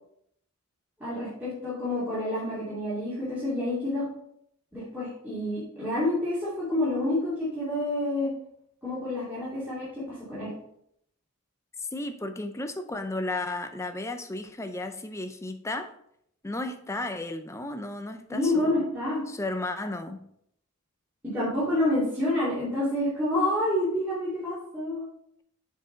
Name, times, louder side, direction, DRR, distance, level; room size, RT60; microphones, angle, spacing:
voice 1, 1.0-4.1 4.7-8.3 8.8-10.5 18.3-19.2 21.2-25.1, left 1 dB, 10° right, -12 dB, 2.5 m, -28 dB
voice 2, 11.9-15.9 16.4-18.8 19.3-20.2, left 2 dB, 15° left, 8 dB, 0.5 m, -34 dB
7.3 x 4.7 x 3.9 m, 0.72 s
head